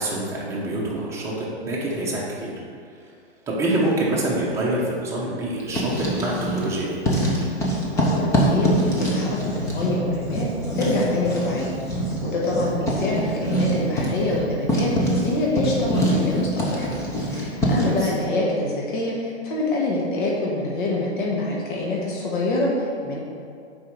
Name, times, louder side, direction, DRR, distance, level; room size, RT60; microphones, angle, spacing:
voice 1, 0.0-2.5 3.0-3.1 3.5-7.0 17.8-18.1, right 1 dB, 10° right, -5 dB, 1.0 m, -26 dB
Writing, 5.6-6.7 7.0-18.0, equal, 10° left, 0.7 m, -24 dB
voice 2, 7.9-10.5 10.7-11.7 12.2-16.9 17.3-23.2, left 2 dB, 45° left, -3 dB, 1.5 m, -25 dB
5.5 x 5.0 x 6.1 m, 2.3 s
hypercardioid pair, 150°, 33 cm